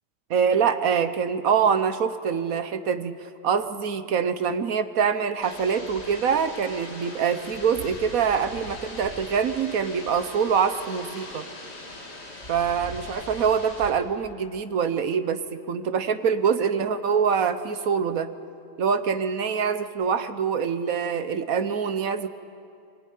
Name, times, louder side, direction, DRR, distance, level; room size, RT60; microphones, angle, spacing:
voice 1, 0.3-3.2 3.4-11.5 12.5-18.3 18.8-22.3, right 6 dB, 60° right, 11 dB, 1.3 m, -24 dB
sound 1, 5.4-13.9, left 1 dB, 40° left, 2.7 m, -41 dB
23.5 x 18.5 x 9.3 m, 2.4 s
omnidirectional pair, 1.8 m